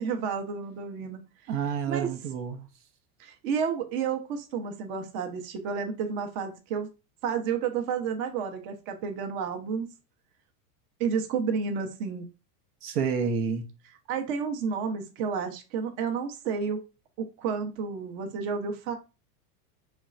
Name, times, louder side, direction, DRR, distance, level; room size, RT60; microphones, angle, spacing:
voice 1, 0.0-1.5 1.9-2.1 3.2-6.9 7.2-9.9 11.0-12.3 14.1-16.8 17.2-19.0, right 6 dB, 55° right, 0.9 m, -31 dB
voice 2, 1.5-2.7 12.8-13.7, right 6 dB, 80° right, 0.9 m, -29 dB
4.4 x 3.2 x 2.5 m
supercardioid pair, 130°, 46 cm